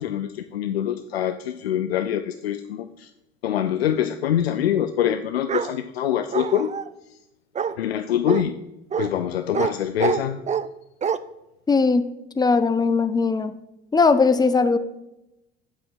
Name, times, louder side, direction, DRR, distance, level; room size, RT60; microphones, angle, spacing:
voice 1, 0.0-3.1 3.4-6.7 7.1-7.2 7.8-8.6 9.0-10.4, left 10 dB, 90° left, 9 dB, 0.5 m, -24 dB
Bark, 5.5-5.7 6.3-6.9 7.5-7.7 8.3-8.4 8.9-9.1 9.5-9.7 10.0-10.7 11.0-11.2, right 7 dB, 25° right, 0.5 m, -25 dB
voice 2, 11.7-12.1 12.4-13.6 13.9-14.8, left 4 dB, 15° left, 11 dB, 0.8 m, -19 dB
8.6 x 7.7 x 5.4 m, 0.91 s
hypercardioid pair, 60°, 30 cm